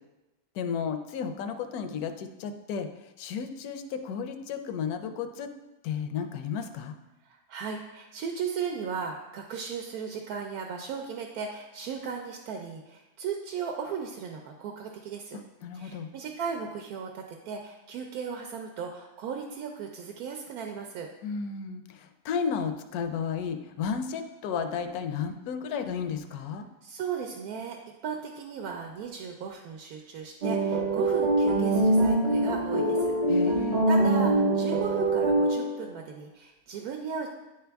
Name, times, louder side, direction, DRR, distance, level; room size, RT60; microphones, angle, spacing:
voice 1, 0.5-2.9 3.2-5.5 5.8-6.9 15.6-16.1 21.2-26.6 33.3-33.9, left 6 dB, 85° left, 8 dB, 1.0 m, -33 dB
voice 2, 7.3-15.4 15.7-21.1 26.8-27.8 28.0-33.1 33.5-37.3, right 6 dB, 85° right, 2 dB, 1.1 m, -36 dB
sound 1, 30.4-35.8, right 2 dB, 60° right, 0.4 m, -24 dB
9.6 x 3.4 x 3.4 m, 1.0 s
omnidirectional pair, 1.5 m